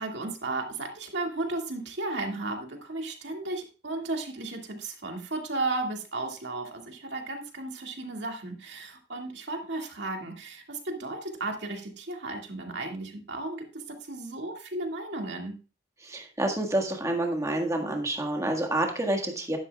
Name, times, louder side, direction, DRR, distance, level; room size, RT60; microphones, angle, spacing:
voice 1, 0.0-15.5, right 2 dB, 65° right, 2 dB, 2.2 m, -34 dB
voice 2, 16.0-19.6, right 1 dB, 15° right, 2 dB, 1.7 m, -28 dB
11.5 x 11.0 x 2.4 m, 0.34 s
head